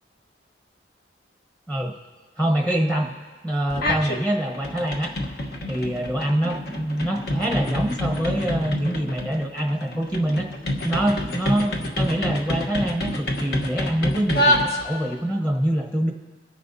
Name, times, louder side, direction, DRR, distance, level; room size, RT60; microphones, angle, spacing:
voice 1, 2.4-5.1 5.7-10.5 10.8-16.1, right 1 dB, 5° left, 2 dB, 1.0 m, -25 dB
sound 1, 3.7-4.2 4.5-15.2, left 1 dB, 60° left, 1.2 m, -27 dB
24.0 x 10.0 x 2.7 m, 1.4 s
head